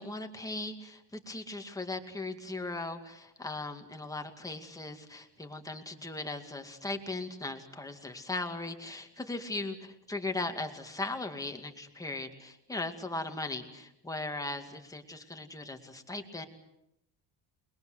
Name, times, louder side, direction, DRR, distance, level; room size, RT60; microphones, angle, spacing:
voice 1, 0.0-16.4, left 2 dB, 10° left, 4 dB, 2.2 m, -38 dB
29.0 x 22.0 x 7.9 m, 0.82 s
cardioid pair, 180°, 42 cm